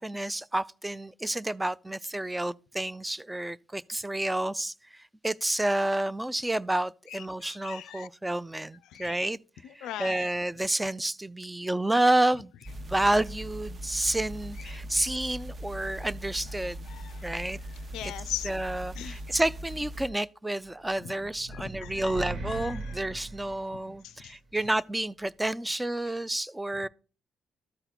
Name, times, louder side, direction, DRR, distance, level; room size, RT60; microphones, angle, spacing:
voice 1, 0.0-9.4 9.8-12.5 12.9-16.8 17.2-17.6 18.0-18.1 18.4-26.9, right 1 dB, 10° right, 0.3 m, -30 dB
voice 2, 7.1-8.1 8.9-9.1 9.6-10.3 14.9-15.0 16.9-17.2 17.9-18.5 19.0-19.2 21.0-21.1 21.5-22.2 22.5-23.0 24.0-24.3, left 12 dB, 90° left, 0.4 m, -40 dB
sound 1, 12.6-20.1, right 1 dB, 35° right, 0.7 m, -40 dB
sound 2, 20.8-24.3, right 2 dB, 70° right, 1.9 m, -39 dB
13.0 x 4.4 x 4.1 m
cardioid pair, 90°, 0 cm